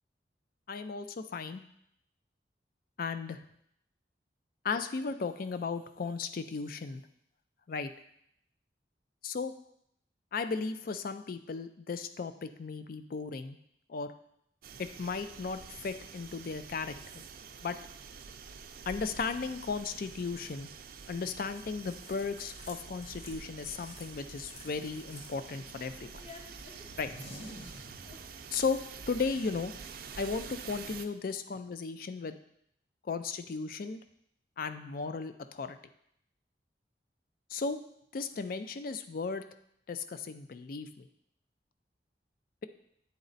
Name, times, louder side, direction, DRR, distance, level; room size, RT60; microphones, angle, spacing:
voice 1, 0.7-1.6 3.0-3.4 4.6-7.0 7.7-7.9 9.2-9.5 10.3-13.6 13.9-14.1 14.8-17.2 17.6-17.8 18.9-20.7 21.1-26.1 27.0-27.1 28.5-28.8 29.1-29.7 30.2-32.4 33.0-34.0 34.6-35.8 37.5-37.8 38.1-39.4 39.9-41.1, left 4 dB, 50° left, 10 dB, 0.4 m, -35 dB
sound 1, 14.6-31.1, right 6 dB, 55° right, 0.4 m, -48 dB
sound 2, 21.5-28.8, left 2 dB, 35° left, 1.0 m, -53 dB
sound 3, 26.3-30.0, equal, 70° left, 2.1 m, -50 dB
8.9 x 4.1 x 3.9 m, 0.73 s
head